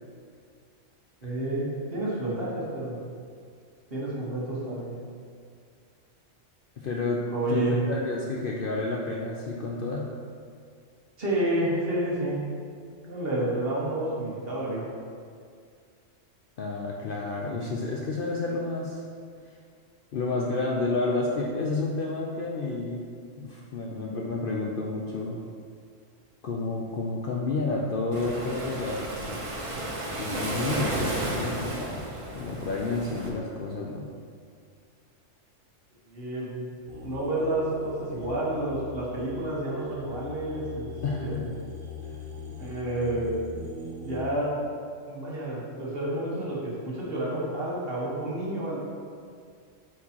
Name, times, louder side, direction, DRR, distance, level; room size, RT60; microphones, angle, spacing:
voice 1, 1.2-3.0 3.9-5.0 7.3-7.8 11.2-12.4 13.0-14.9 36.1-36.7 37.0-40.9 41.2-41.5 42.5-43.5 44.0-44.5 45.1-48.8, right 1 dB, 50° right, -6 dB, 1.6 m, -30 dB
voice 2, 6.8-7.2 7.5-10.1 16.6-19.0 20.1-23.0 23.4-25.4 26.4-29.4 30.2-32.1 32.3-34.1 41.0-41.5, left 3 dB, 55° left, -2 dB, 0.6 m, -30 dB
Waves surf, 28.1-33.3, right 1 dB, 30° right, 0.7 m, -32 dB
sound 1, 36.9-44.2, left 2 dB, 85° right, 1.4 m, -40 dB
8.1 x 4.6 x 2.9 m, 2.2 s
omnidirectional pair, 1.3 m